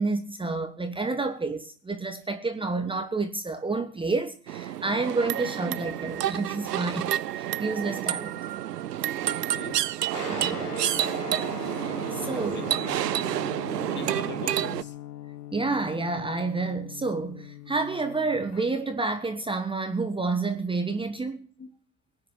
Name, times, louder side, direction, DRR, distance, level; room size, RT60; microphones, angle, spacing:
voice 1, 0.0-7.1 7.4-8.4 10.3-10.7 12.1-12.7 15.5-21.5, right 3 dB, 10° right, 1.3 m, -29 dB
sound 1, 4.5-14.8, right 12 dB, 85° right, 0.7 m, -29 dB
voice 2, 9.3-9.8 12.2-12.7 13.8-14.9 21.6-21.7, left 5 dB, 25° left, 1.7 m, -41 dB
Guitar, 10.1-18.6, left 10 dB, 85° left, 1.3 m, -40 dB
18.0 x 9.8 x 6.9 m
hypercardioid pair, 90°, 47 cm